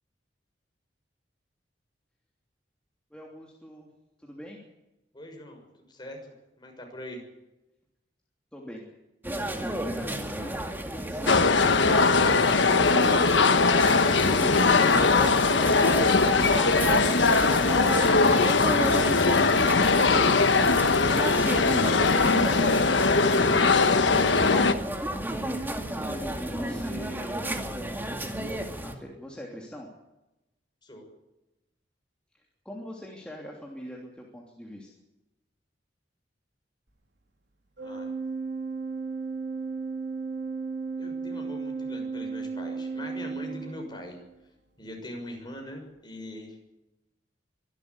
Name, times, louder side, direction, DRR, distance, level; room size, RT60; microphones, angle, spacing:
voice 1, 3.1-3.9 4.2-4.6 8.5-8.8 9.5-11.5 24.7-24.9 25.6-27.5 28.8-29.9 32.6-34.9, equal, 5° left, -2 dB, 3.0 m, -42 dB
voice 2, 5.1-6.2 6.6-7.2 30.8-31.0 37.8-38.1 41.0-44.2 44.8-46.5, left 1 dB, 25° left, 2 dB, 6.6 m, -42 dB
sound 1, 9.2-28.9, right 1 dB, 10° right, 2.2 m, -32 dB
sound 2, 11.3-24.7, left 4 dB, 90° left, 1.3 m, -21 dB
Organ, 37.8-44.3, right 4 dB, 70° right, 4.0 m, -34 dB
25.0 x 13.0 x 9.8 m, 0.96 s
head